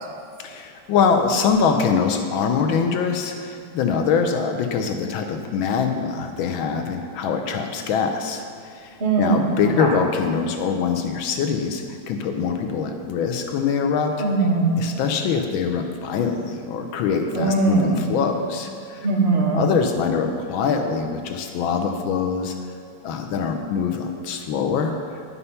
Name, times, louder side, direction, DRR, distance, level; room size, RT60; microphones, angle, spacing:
voice 1, 0.4-14.1 14.8-19.1 19.5-22.5 23.0-24.9, left 6 dB, 85° left, 5 dB, 1.5 m, -23 dB
voice 2, 9.0-10.0 14.2-14.7 17.3-18.0 19.0-19.6, right 3 dB, 35° right, -3 dB, 1.5 m, -20 dB
9.8 x 5.6 x 5.5 m, 2.4 s
omnidirectional pair, 2.1 m